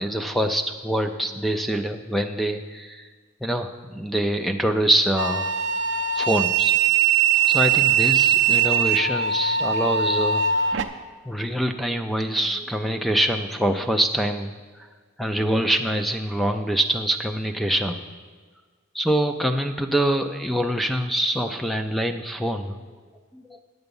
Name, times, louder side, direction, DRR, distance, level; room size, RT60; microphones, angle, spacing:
voice 1, 0.0-3.0 3.4-5.5 6.1-6.7 7.4-10.7 11.3-14.5 15.2-18.0 18.9-22.8 23.3-23.6, right 1 dB, ahead, 6 dB, 0.4 m, -24 dB
sound 1, 5.2-10.8, right 7 dB, 55° right, 0.5 m, -21 dB
9.8 x 8.0 x 5.4 m, 1.5 s
head